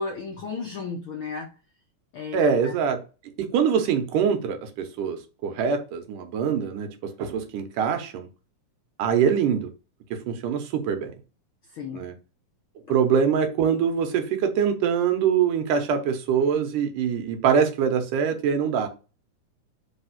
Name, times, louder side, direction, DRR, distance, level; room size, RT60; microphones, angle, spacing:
voice 1, 0.0-1.5 2.1-2.7 11.7-12.0, left 4 dB, 75° left, 1.2 m, -33 dB
voice 2, 2.3-3.0 3.4-8.3 9.0-9.7 10.1-11.1 11.9-12.1 12.9-18.9, right 7 dB, 80° right, 2.6 m, -24 dB
5.4 x 3.4 x 5.6 m
omnidirectional pair, 3.7 m